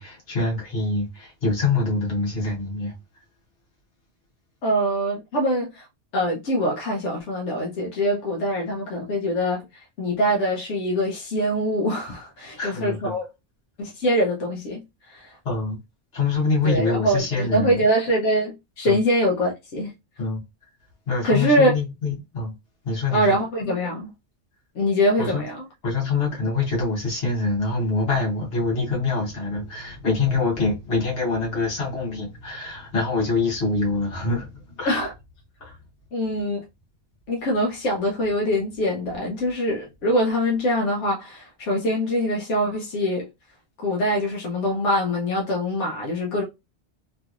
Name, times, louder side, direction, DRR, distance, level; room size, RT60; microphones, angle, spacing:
voice 1, 0.0-2.9 12.6-13.1 15.4-15.8 16.1-17.8 18.8-19.0 20.2-20.4 21.1-22.5 22.8-23.4 25.2-25.4 25.8-34.5 34.8-35.0 35.6-35.7, left 3 dB, 60° left, 1.4 m, -25 dB
voice 2, 4.6-5.9 6.1-13.2 13.8-14.8 15.1-15.4 16.6-19.9 21.2-21.7 23.1-24.1 24.7-25.7 34.8-35.1 36.1-36.6 37.3-43.3 43.8-46.4, equal, 85° left, 1.1 m, -23 dB
3.1 x 2.8 x 2.4 m
omnidirectional pair, 1.2 m